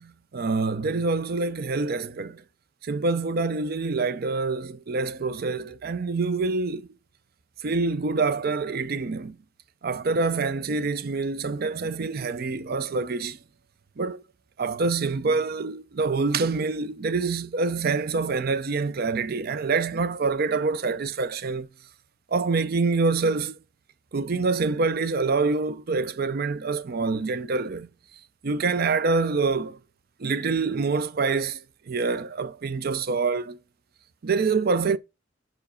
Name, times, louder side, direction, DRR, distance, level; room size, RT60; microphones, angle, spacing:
voice 1, 0.0-2.4 2.8-6.9 7.6-9.4 9.8-13.4 14.0-14.2 14.6-21.7 22.3-23.6 24.1-27.9 28.4-29.8 30.2-31.6 31.9-33.6 34.2-35.0, right 4 dB, 50° right, 0.5 m, -26 dB
5.2 x 4.8 x 5.0 m
head